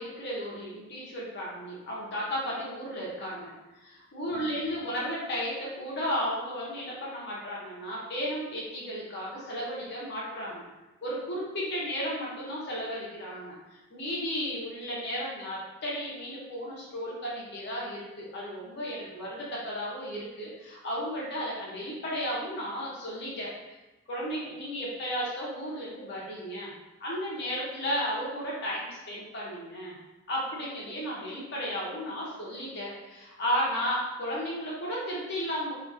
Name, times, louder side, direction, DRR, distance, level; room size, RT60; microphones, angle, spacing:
voice 1, 0.0-3.5 3.8-10.7 11.0-13.6 13.9-23.8 24.1-26.7 27.0-30.0 30.3-35.7, equal, 55° left, -5 dB, 0.7 m, -34 dB
2.5 x 2.4 x 2.5 m, 1.1 s
head